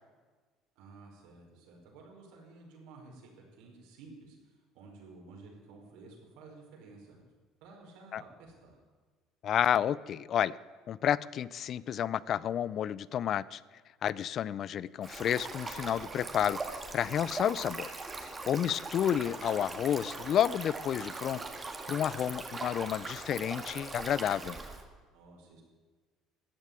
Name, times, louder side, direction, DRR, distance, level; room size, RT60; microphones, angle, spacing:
voice 1, 0.7-7.3 7.6-8.8 18.5-18.7 25.1-25.6, right 3 dB, 85° right, -1 dB, 4.9 m, -53 dB
voice 2, 9.4-10.6 10.9-13.6 14.0-17.9 18.5-21.4 21.9-24.6, left 10 dB, 45° left, 20 dB, 0.4 m, -30 dB
Stream, 15.0-24.8, right 3 dB, 20° right, 1.6 m, -41 dB
14.0 x 8.3 x 9.7 m, 1.4 s
cardioid pair, 135°, 0 cm